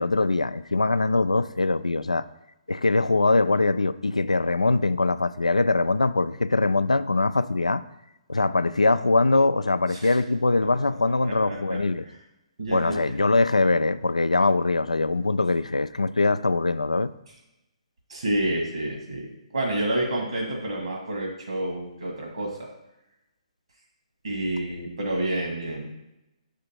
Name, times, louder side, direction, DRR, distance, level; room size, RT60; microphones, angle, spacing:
voice 1, 0.0-2.2 2.7-7.8 8.3-12.0 12.7-17.1, left 3 dB, 80° left, 0.4 m, -22 dB
voice 2, 11.2-12.1 12.6-13.1 18.1-22.7 24.2-25.9, right 1 dB, 70° right, 1.7 m, -29 dB
6.8 x 5.0 x 4.4 m
figure-of-eight pair, 130°, 3 cm